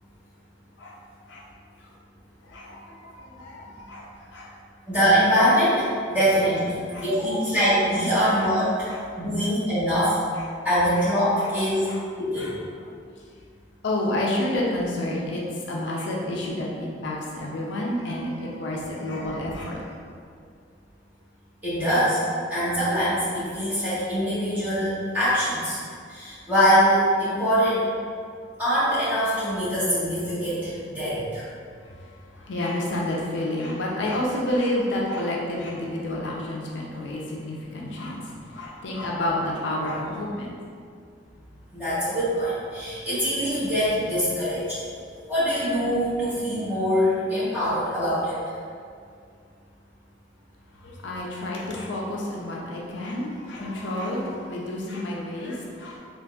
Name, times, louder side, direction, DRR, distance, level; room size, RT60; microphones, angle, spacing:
voice 1, 2.5-4.0 4.3-4.5 6.9-7.1 8.9-9.0 11.9-12.0 12.4-12.5 13.8-15.4 15.7-19.8 32.4-38.2 38.5-40.5 50.8-56.0, left 1 dB, 70° left, -3 dB, 0.4 m, -29 dB
voice 2, 4.9-8.9 9.2-10.2 10.6-11.9 12.2-12.5 21.6-22.2 22.5-25.8 26.1-27.8 28.6-31.5 41.7-44.8 45.3-48.6, equal, 10° right, -14 dB, 1.3 m, -23 dB
3.8 x 2.5 x 2.3 m, 2.2 s
head